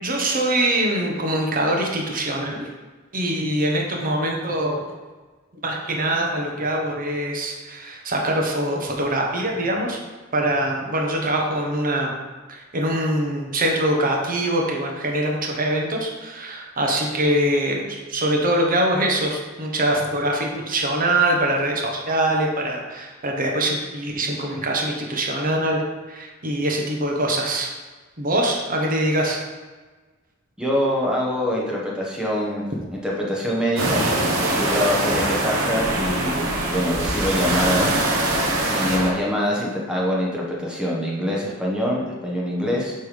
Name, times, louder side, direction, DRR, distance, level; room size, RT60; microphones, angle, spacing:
voice 1, 0.0-2.7 3.1-4.8 5.6-10.0 10.3-12.1 12.5-25.8 26.1-27.7 28.2-29.4, right 1 dB, 40° right, 0 dB, 1.1 m, -23 dB
voice 2, 30.6-34.0 34.6-38.1 38.7-42.9, equal, 5° right, -4 dB, 1.2 m, -24 dB
sound 1, 33.8-39.1, right 1 dB, 85° right, 1.1 m, -23 dB
7.9 x 3.5 x 5.1 m, 1.3 s
head